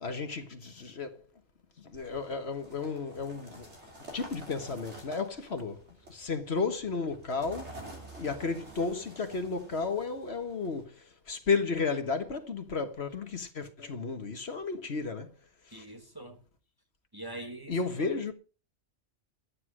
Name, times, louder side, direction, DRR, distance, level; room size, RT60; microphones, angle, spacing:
voice 1, 0.0-1.2 1.8-3.7 4.1-5.8 6.1-7.7 8.2-15.3 15.7-15.9 17.7-18.3, left 4 dB, 55° left, 1.6 m, -33 dB
sound 1, 1.9-10.8, right 1 dB, 60° right, 3.3 m, -49 dB
voice 2, 15.7-16.4 17.1-18.3, right 1 dB, 20° right, 1.5 m, -44 dB
12.0 x 9.8 x 6.2 m
omnidirectional pair, 1.3 m